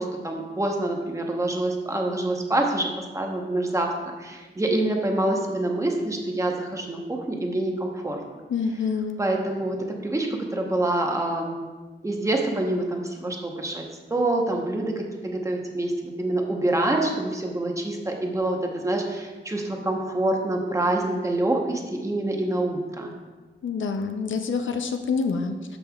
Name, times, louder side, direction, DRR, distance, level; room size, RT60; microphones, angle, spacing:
voice 1, 0.0-8.2 9.2-11.6 12.0-13.8 14.1-18.6 18.8-23.1, right 1 dB, 15° right, 1 dB, 0.9 m, -26 dB
voice 2, 8.5-9.2 23.6-25.8, left 5 dB, 80° left, 6 dB, 0.5 m, -27 dB
13.0 x 5.4 x 2.3 m, 1.3 s
wide cardioid pair, 125°, 20 cm